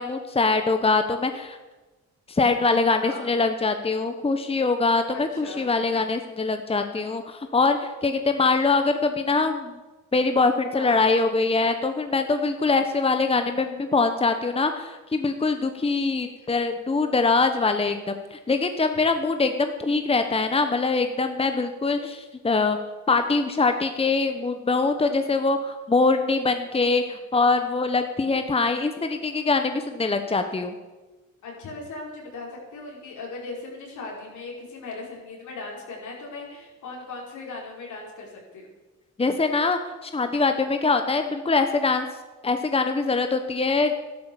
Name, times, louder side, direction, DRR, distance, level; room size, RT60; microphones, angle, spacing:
voice 1, 0.0-1.6 2.3-9.7 10.1-22.8 23.1-30.7 39.2-42.1 42.4-43.9, left 3 dB, 20° left, 7 dB, 1.1 m, -23 dB
voice 2, 5.1-5.7 10.7-11.0 16.4-16.5 25.1-25.5 31.4-38.7, left 3 dB, 75° left, -2 dB, 5.2 m, -38 dB
13.0 x 12.0 x 7.2 m, 1.2 s
cardioid pair, 90°, 30 cm